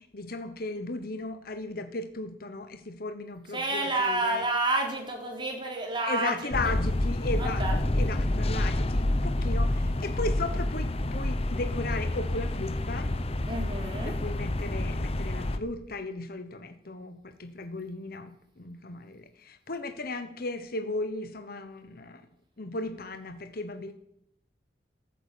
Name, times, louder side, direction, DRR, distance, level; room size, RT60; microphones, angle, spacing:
voice 1, 0.0-4.4 6.0-13.1 14.0-22.3 22.6-23.9, left 2 dB, 55° left, 9 dB, 1.1 m, -36 dB
voice 2, 3.5-6.5 7.3-7.8 13.5-14.2, right 2 dB, 30° right, 1 dB, 3.9 m, -29 dB
sound 1, 6.5-15.6, left 1 dB, 35° left, 0.9 m, -28 dB
14.5 x 8.9 x 8.5 m, 0.72 s
head